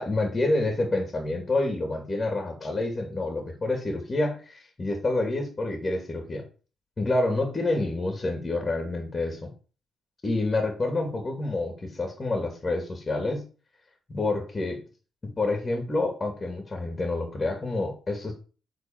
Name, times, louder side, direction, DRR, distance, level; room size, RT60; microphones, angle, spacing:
voice 1, 0.0-6.4 7.0-9.5 10.2-13.5 14.1-14.8 15.2-18.3, left 2 dB, 25° left, 3 dB, 2.4 m, -28 dB
8.3 x 4.1 x 5.9 m, 0.37 s
cardioid pair, 90°, 0 cm